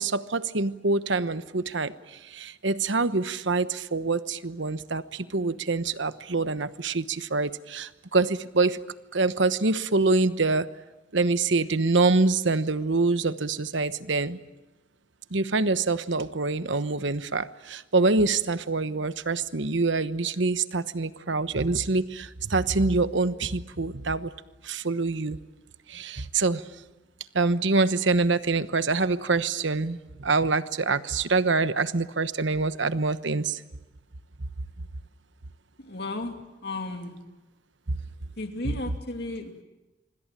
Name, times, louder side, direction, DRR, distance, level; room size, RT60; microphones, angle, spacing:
voice 1, 0.0-8.8 9.1-10.7 11.1-14.4 15.3-24.3 24.6-25.4 25.9-26.7 27.3-33.6 37.9-38.0 38.6-38.7, right 3 dB, 65° right, 13 dB, 1.1 m, -25 dB
voice 2, 35.8-37.2 38.4-39.6, left 2 dB, 55° left, 5 dB, 2.5 m, -34 dB
25.5 x 25.5 x 9.0 m, 1.1 s
head